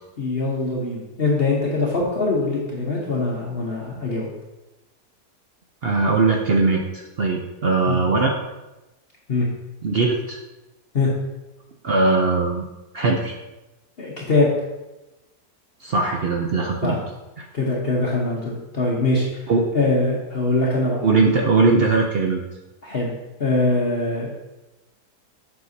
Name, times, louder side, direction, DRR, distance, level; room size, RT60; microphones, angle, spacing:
voice 1, 0.2-4.3 7.9-8.0 9.3-9.5 10.9-11.1 14.0-14.5 16.8-17.0 17.5-19.3 19.7-21.0 22.8-23.1 23.4-24.4, left 2 dB, 45° left, -4 dB, 1.0 m, -22 dB
voice 2, 5.8-8.3 9.8-10.4 11.8-12.7 12.9-13.3 15.8-17.0 17.4-17.5 19.5-19.7 21.0-22.4, right 3 dB, 65° right, 1 dB, 0.6 m, -20 dB
7.7 x 5.8 x 2.7 m, 1.0 s
omnidirectional pair, 1.7 m